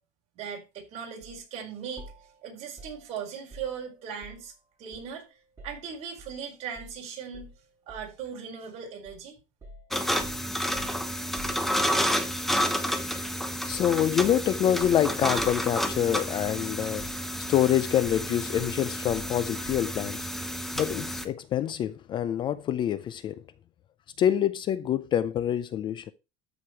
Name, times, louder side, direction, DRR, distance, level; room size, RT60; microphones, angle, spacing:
voice 1, 0.3-2.1 2.4-4.5 4.8-5.3 5.6-7.5 7.9-9.3, right 7 dB, 45° right, 4.8 m, -38 dB
sound 1, 1.2-1.4 2.0-4.6 4.9-6.4 6.8-7.0 7.3-8.2 9.1-9.3 9.6-12.2 13.7-14.0 14.2-16.7 17.0-17.6 18.1-20.0, right 1 dB, 20° right, 5.0 m, -49 dB
sound 2, 9.9-21.2, equal, ahead, 0.9 m, -30 dB
voice 2, 13.7-17.2 17.5-23.4 24.2-26.1, left 10 dB, 30° left, 0.4 m, -26 dB
13.0 x 5.0 x 4.6 m
cardioid pair, 165°, 16 cm